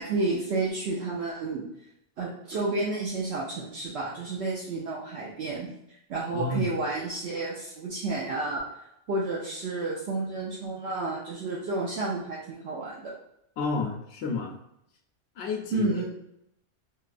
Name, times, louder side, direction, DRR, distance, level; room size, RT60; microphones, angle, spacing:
voice 1, 0.0-1.6 2.2-5.7 6.1-8.6 9.1-13.1 15.7-16.0, right 2 dB, 70° right, -4 dB, 0.8 m, -30 dB
voice 2, 6.3-6.7 13.6-14.5 15.4-15.9, left 4 dB, 75° left, 2 dB, 0.9 m, -30 dB
4.6 x 2.3 x 2.5 m, 0.77 s
omnidirectional pair, 1.2 m